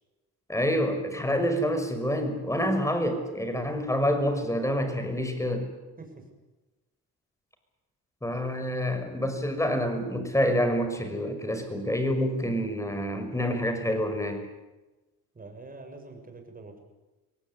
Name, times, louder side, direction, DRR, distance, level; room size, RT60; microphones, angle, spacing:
voice 1, 0.5-5.7 8.2-14.4, equal, 10° left, 7 dB, 6.0 m, -27 dB
voice 2, 15.3-16.8, right 3 dB, 30° right, 4 dB, 7.0 m, -45 dB
24.5 x 18.0 x 9.8 m, 1.1 s
cardioid pair, 90°, 30 cm